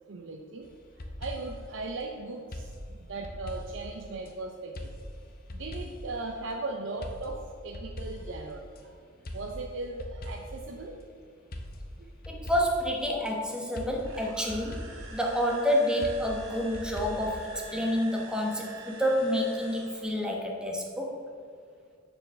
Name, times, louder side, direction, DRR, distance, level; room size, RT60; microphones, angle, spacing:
voice 1, 0.1-0.7 1.2-2.7 3.1-4.7 5.6-7.4 7.6-8.6 9.3-11.0, right 3 dB, 70° right, 2 dB, 0.6 m, -37 dB
sound 1, 0.6-1.7 2.5-4.3 4.7-6.2 7.0-8.8 9.2-10.7 11.5-13.3 13.7-15.2 16.0-17.6, left 1 dB, 50° left, 0.8 m, -41 dB
voice 2, 12.3-21.2, equal, 5° right, 0 dB, 1.1 m, -29 dB
sound 2, 14.0-20.3, right 2 dB, 85° right, 1.4 m, -47 dB
7.2 x 4.6 x 6.7 m, 2.2 s
head